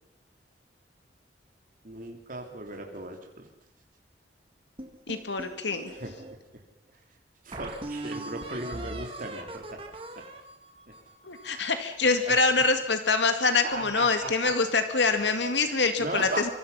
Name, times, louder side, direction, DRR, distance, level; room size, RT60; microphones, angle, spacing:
voice 1, 1.8-3.5 5.9-6.6 7.4-9.8 10.1-10.2 10.9-11.0 12.2-12.4 13.6-14.5 15.6-16.5, right 2 dB, 45° right, 2 dB, 3.3 m, -37 dB
sound 1, 4.8-6.3 6.9-7.0 7.5-11.7, right 2 dB, 30° right, 2.8 m, -40 dB
voice 2, 5.1-5.9 11.2-16.5, left 4 dB, 75° left, 7 dB, 2.2 m, -25 dB
25.5 x 23.5 x 5.7 m, 0.81 s
head